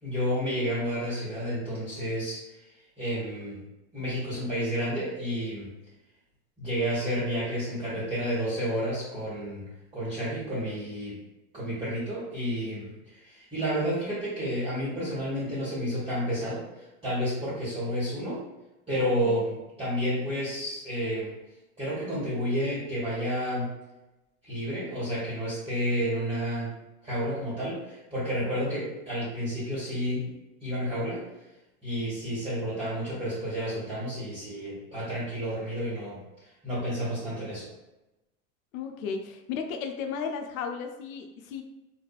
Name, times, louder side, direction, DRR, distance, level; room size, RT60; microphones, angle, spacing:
voice 1, 0.0-2.4 3.0-3.6 3.9-5.7 6.6-11.2 11.5-16.6 17.0-18.4 18.9-21.3 21.8-23.7 24.4-26.7 27.0-30.3 30.6-31.2 31.8-37.7, equal, 15° right, -11 dB, 1.3 m, -30 dB
voice 2, 38.7-41.6, left 6 dB, 90° left, 5 dB, 0.5 m, -34 dB
2.6 x 2.4 x 2.3 m, 0.98 s
hypercardioid pair, 100°, 40 cm